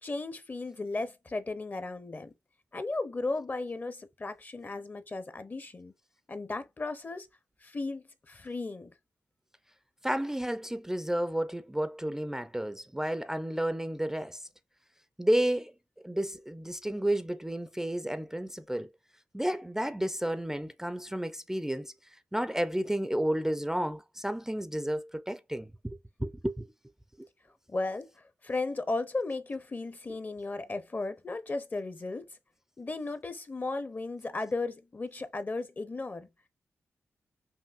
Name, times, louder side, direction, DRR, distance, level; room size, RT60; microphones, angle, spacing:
voice 1, 0.0-2.3 2.7-5.9 6.3-7.3 7.6-8.9 27.7-32.3 32.8-36.3, left 3 dB, 35° left, 0.6 m, -35 dB
voice 2, 10.0-14.5 15.2-15.7 16.0-18.9 19.3-26.7 27.2-27.3, right 1 dB, 10° right, 0.4 m, -32 dB
5.6 x 2.5 x 2.4 m
cardioid pair, 60°, 5 cm